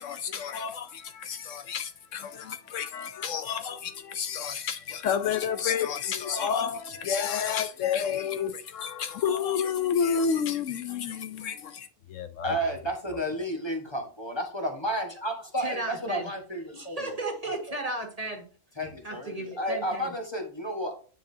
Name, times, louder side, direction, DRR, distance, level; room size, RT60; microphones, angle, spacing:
voice 1, 0.0-12.6, left 7 dB, 75° left, 0.9 m, -30 dB
voice 2, 12.4-17.1 17.7-17.8 18.8-21.0, equal, 20° left, 1.4 m, -32 dB
voice 3, 15.6-16.3 16.7-18.4 19.0-20.1, right 2 dB, 30° right, 1.8 m, -34 dB
9.3 x 4.9 x 2.7 m
omnidirectional pair, 1.4 m